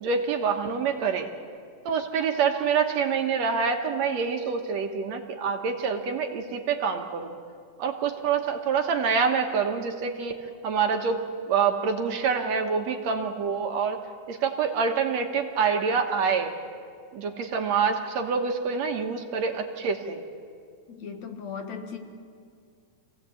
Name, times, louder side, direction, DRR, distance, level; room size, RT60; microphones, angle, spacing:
voice 1, 0.0-1.3 1.9-7.4 7.8-10.4 10.6-14.0 14.3-16.5 17.1-20.2, right 6 dB, 65° right, 4 dB, 2.3 m, -26 dB
voice 2, 20.9-22.0, left 6 dB, 65° left, 5 dB, 2.7 m, -37 dB
26.0 x 17.0 x 8.4 m, 2.2 s
omnidirectional pair, 3.5 m